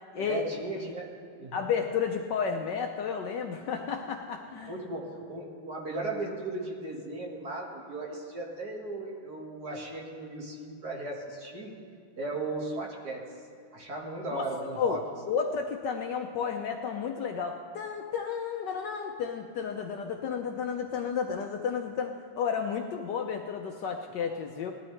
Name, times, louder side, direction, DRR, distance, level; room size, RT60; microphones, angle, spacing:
voice 1, 0.2-1.7 4.7-11.7 12.2-13.2 13.7-15.0, right 2 dB, 50° right, -2 dB, 2.2 m, -36 dB
voice 2, 1.5-4.7 14.3-14.4 14.8-15.0 15.3-24.7, left 6 dB, 70° left, 3 dB, 1.1 m, -32 dB
18.5 x 12.5 x 3.2 m, 2.3 s
omnidirectional pair, 2.3 m